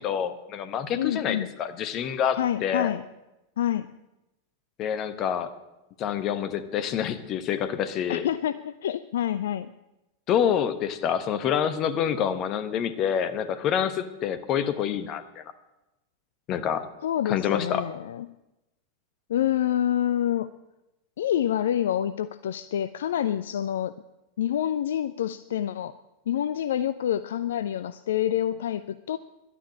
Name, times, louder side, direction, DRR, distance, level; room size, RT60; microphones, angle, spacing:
voice 1, 0.0-2.9 4.8-5.5 6.0-8.3 10.3-15.4 16.5-16.9 17.2-17.8, left 8 dB, 35° left, 12 dB, 1.2 m, -27 dB
voice 2, 0.9-1.5 2.4-3.0 3.6-3.9 8.1-9.7 17.0-18.3 19.3-20.5 21.2-23.9 24.4-26.0 26.3-29.2, left 10 dB, 60° left, 14 dB, 0.4 m, -27 dB
11.5 x 9.9 x 8.5 m, 0.96 s
figure-of-eight pair, 90°, 0 cm